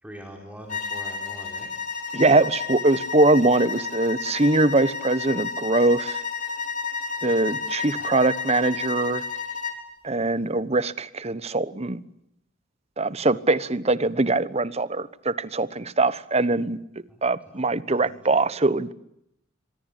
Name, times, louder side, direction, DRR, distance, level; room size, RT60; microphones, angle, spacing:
voice 1, 0.0-1.7 7.9-8.2 17.1-17.2 17.9-18.1, equal, 5° right, 2 dB, 4.2 m, -43 dB
sound 1, 0.7-9.8, left 5 dB, 40° left, 4.1 m, -31 dB
voice 2, 2.1-6.2 7.2-9.2 10.0-12.0 13.0-16.8 17.2-18.9, right 2 dB, 35° right, 17 dB, 1.1 m, -22 dB
25.5 x 24.0 x 8.4 m, 0.79 s
head